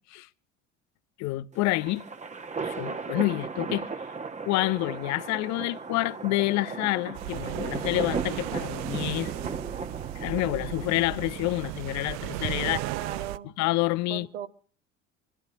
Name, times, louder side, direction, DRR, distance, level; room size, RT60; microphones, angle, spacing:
voice 1, 1.2-2.0 2.6-3.9 4.5-9.3 10.2-12.8 13.6-14.3, left 19 dB, 45° left, 0.8 m, -28 dB
sound 1, 1.5-12.0, right 4 dB, 20° right, 1.3 m, -36 dB
sound 2, 7.2-13.4, right 17 dB, 45° right, 0.6 m, -35 dB
voice 2, 12.6-13.5 14.1-14.5, right 10 dB, 65° right, 1.6 m, -37 dB
26.5 x 12.5 x 2.9 m
figure-of-eight pair, 60°, 37 cm